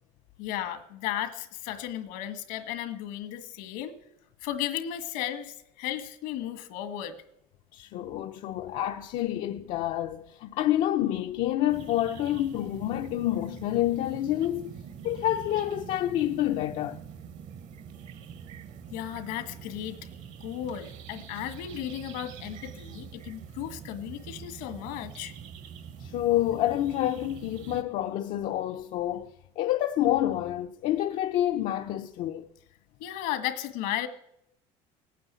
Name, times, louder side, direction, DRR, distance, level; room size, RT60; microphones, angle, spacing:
voice 1, 0.4-3.9 4.4-7.1 18.9-20.0 20.4-25.3 33.0-34.1, left 11 dB, 75° left, 1.8 m, -35 dB
voice 2, 7.7-14.6 15.0-17.0 26.0-32.5, left 13 dB, 60° left, 0.8 m, -28 dB
sound 1, 11.7-27.8, right 8 dB, 55° right, 1.5 m, -45 dB
18.0 x 9.5 x 8.3 m
cardioid pair, 125°, 15 cm